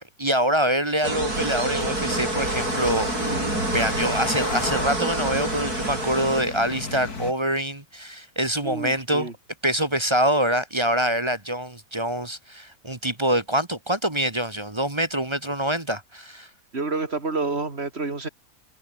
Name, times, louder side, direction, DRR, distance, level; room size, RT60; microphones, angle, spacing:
voice 1, 0.0-9.3 9.6-16.5, right 1 dB, 20° right, 1.6 m, -25 dB
sound 1, 1.0-6.4, right 2 dB, 80° right, 7.1 m, -27 dB
sound 2, 1.3-7.3, left 3 dB, 80° left, 4.1 m, -34 dB
voice 2, 8.6-9.3 16.7-18.3, right 3 dB, 40° right, 3.2 m, -28 dB
omnidirectional pair, 1.6 m